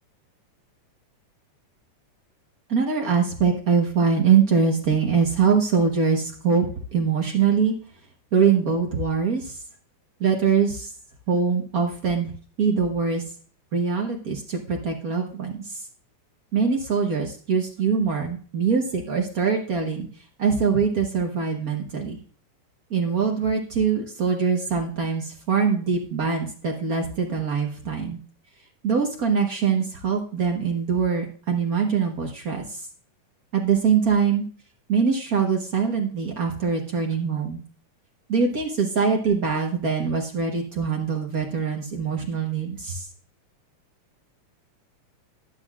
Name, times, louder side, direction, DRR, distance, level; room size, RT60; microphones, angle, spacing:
voice 1, 2.7-7.7 8.3-9.6 10.2-10.9 11.3-12.3 12.6-13.2 13.7-15.8 16.5-20.1 20.4-22.2 22.9-28.2 28.8-32.8 33.5-34.4 34.9-37.6 38.3-43.1, right 6 dB, 80° right, 1 dB, 0.8 m, -23 dB
14.0 x 10.0 x 2.4 m, 0.43 s
omnidirectional pair, 3.5 m